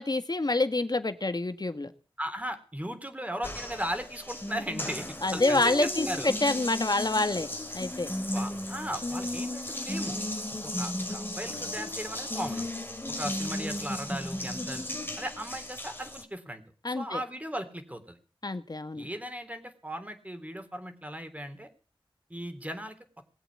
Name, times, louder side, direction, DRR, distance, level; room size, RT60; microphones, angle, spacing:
voice 1, 0.0-1.9 5.2-7.5 7.7-8.1 16.8-17.2 18.4-19.1, left 2 dB, 45° left, 10 dB, 1.7 m, -27 dB
voice 2, 2.2-6.3 8.3-10.2 10.6-12.6 13.2-18.2 18.9-21.7 22.3-23.0, equal, 15° right, 7 dB, 3.4 m, -37 dB
Water tap faucet, 3.4-16.2, left 1 dB, 25° left, 2.5 m, -35 dB
20.0 x 8.1 x 8.6 m, 0.40 s
wide cardioid pair, 55°, 9 cm